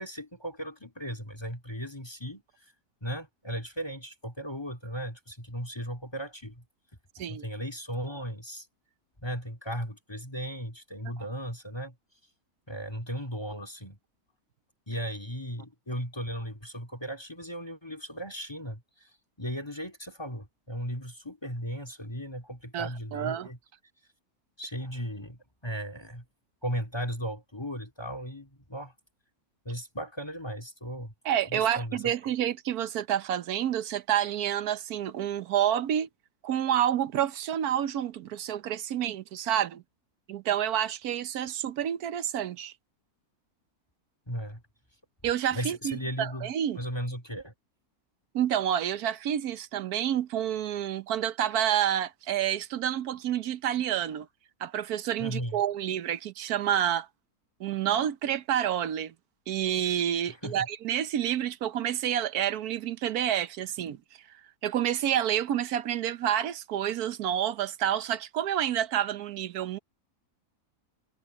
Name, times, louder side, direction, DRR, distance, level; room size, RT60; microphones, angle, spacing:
voice 1, 0.0-2.4 3.0-6.6 7.3-8.7 9.2-11.9 12.7-14.0 14.9-19.1 19.4-23.6 24.6-26.2 26.6-28.9 29.6-31.1 31.5-32.1 44.3-44.6 45.5-47.5 55.2-55.6 60.3-60.7, equal, 15° left, 2.7 m, -36 dB
voice 2, 22.7-23.5 31.2-36.1 36.4-39.8 40.3-42.7 45.2-46.8 48.3-54.3 54.6-57.1 57.6-59.1 59.5-64.0 64.6-69.8, right 10 dB, 80° right, 1.3 m, -29 dB
omnidirectional pair, 1.6 m